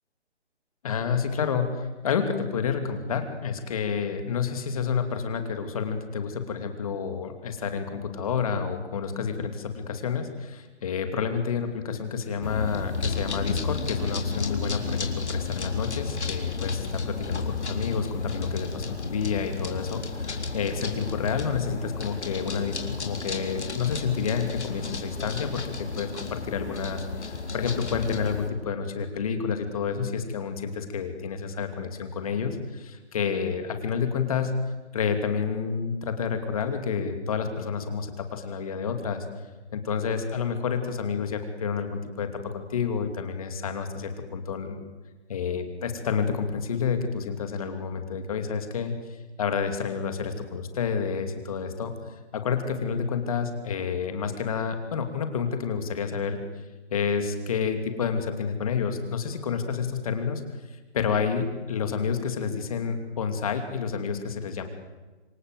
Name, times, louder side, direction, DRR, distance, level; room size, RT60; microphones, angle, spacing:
voice 1, 0.8-34.6 34.9-39.2 39.7-44.8 45.3-51.9 52.3-56.4 56.9-60.4 60.7-64.6, left 6 dB, 30° left, 7 dB, 2.6 m, -29 dB
sound 1, 12.4-28.5, left 4 dB, 80° left, 4.0 m, -32 dB
27.0 x 21.5 x 7.9 m, 1.2 s
hypercardioid pair, 165°, 34 cm